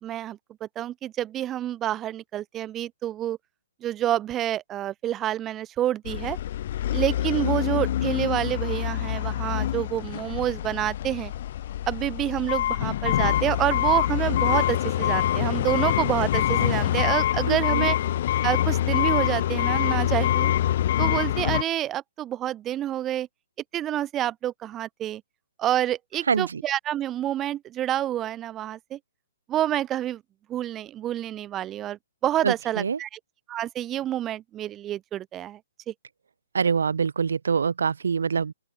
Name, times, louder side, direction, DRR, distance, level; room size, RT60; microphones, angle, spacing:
voice 1, 0.0-3.4 3.8-6.4 6.9-11.3 11.9-18.0 18.4-20.5 21.0-23.3 23.7-25.2 25.6-29.0 29.5-30.2 30.5-33.2 33.5-35.6 35.9-36.0, right 12 dB, 15° right, 1.6 m, -28 dB
sound 1, 6.1-21.6, left 12 dB, 45° left, 1.0 m, -25 dB
voice 2, 17.5-17.9 26.3-26.6 32.4-33.0 36.5-38.5, right 6 dB, 75° right, 4.3 m, -25 dB
open air
hypercardioid pair, 150°, 0 cm